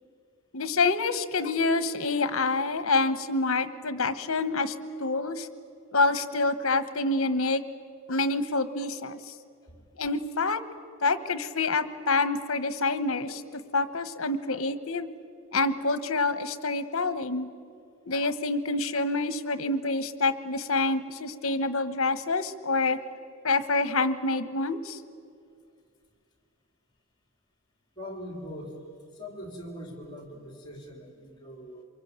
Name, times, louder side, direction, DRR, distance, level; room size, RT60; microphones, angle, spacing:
voice 1, 0.5-4.7 5.0-5.5 5.9-7.6 8.1-9.2 10.0-10.6 11.0-15.1 15.5-17.5 18.0-23.0 23.4-25.0, left 3 dB, 65° left, 12 dB, 1.1 m, -27 dB
voice 2, 28.0-28.8 29.1-31.8, equal, 20° left, 2 dB, 3.9 m, -41 dB
24.5 x 22.5 x 8.8 m, 2.3 s
head